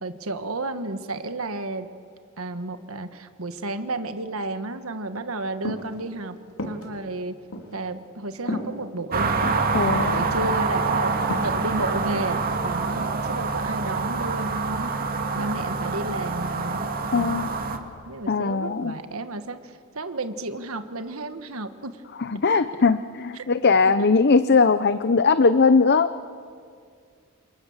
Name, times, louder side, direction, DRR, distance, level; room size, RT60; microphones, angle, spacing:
voice 1, 0.0-1.9 2.4-6.3 6.6-7.3 7.7-9.4 9.9-11.1 11.4-14.9 15.3-19.6 19.9-21.9 23.4-23.5 24.0-24.1, right 2 dB, 75° right, 9 dB, 1.5 m, -32 dB
sound 1, 5.6-6.0 6.6-6.8 7.5-7.7 8.5-8.7 9.4-9.7 10.4-10.8 11.1-11.6 12.2-12.4, left 1 dB, 80° left, 3.7 m, -31 dB
sound 2, 9.1-17.8, right 4 dB, 45° right, 2.2 m, -26 dB
voice 2, 9.7-10.3 17.1-17.5 18.3-19.0 22.1-26.1, left 4 dB, 50° left, 12 dB, 0.7 m, -20 dB
29.0 x 28.0 x 7.4 m, 2.2 s
head